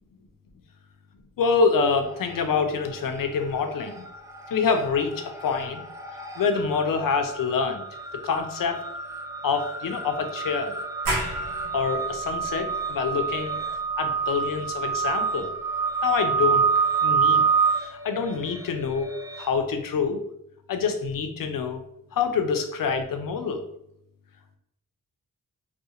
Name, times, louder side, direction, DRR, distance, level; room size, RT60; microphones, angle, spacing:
voice 1, 1.4-4.0 4.5-5.8 6.4-7.8 8.2-8.8 9.4-10.8 11.7-13.6 14.0-15.5 16.0-16.7 17.0-17.4 17.8-19.1 19.4-20.2 20.7-21.8 22.1-23.6, left 5 dB, 70° left, 6 dB, 0.5 m, -26 dB
sound 1, 1.9-2.6 2.9-19.5, right 5 dB, 10° right, 0.3 m, -28 dB
sound 2, 11.0-16.4, right 1 dB, 90° right, 0.7 m, -36 dB
2.4 x 2.3 x 2.8 m, 0.77 s
cardioid pair, 60°, 35 cm